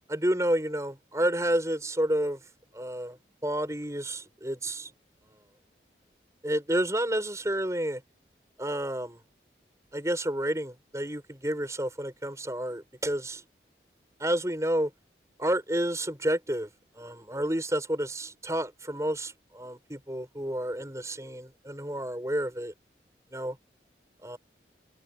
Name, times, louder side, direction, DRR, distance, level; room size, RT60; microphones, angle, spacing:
voice 1, 0.1-2.5 2.7-3.2 3.4-4.9 6.4-8.0 8.6-9.2 9.9-13.4 14.2-14.9 15.4-16.7 16.9-22.7 23.3-23.6 24.2-24.4, right 1 dB, 15° right, 7.1 m, -30 dB
head